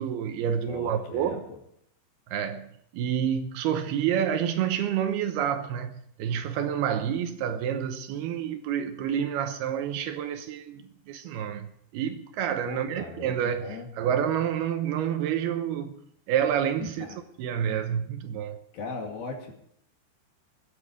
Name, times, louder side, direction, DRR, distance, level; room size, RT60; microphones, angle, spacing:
voice 1, 0.0-1.5 2.3-16.0 16.3-17.1 17.4-18.6, right 9 dB, 80° right, 2.7 m, -29 dB
voice 2, 0.7-1.6 12.6-13.9 16.8-17.1 18.7-19.5, left 4 dB, 60° left, 4.0 m, -39 dB
22.0 x 10.0 x 4.8 m
omnidirectional pair, 4.9 m